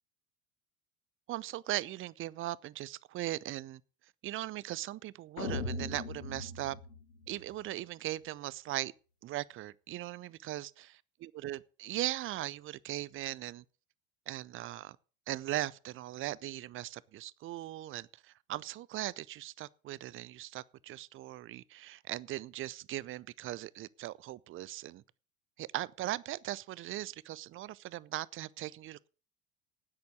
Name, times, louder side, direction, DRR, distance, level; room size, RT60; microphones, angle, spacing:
voice 1, 1.3-3.8 4.2-6.8 7.3-8.9 9.2-10.9 11.2-13.6 14.3-15.0 15.3-25.0 25.6-29.1, right 15 dB, 30° right, 0.6 m, -39 dB
sound 1, 5.4-7.7, left 3 dB, 90° left, 1.0 m, -39 dB
9.4 x 8.7 x 8.1 m
figure-of-eight pair, 70°, 41 cm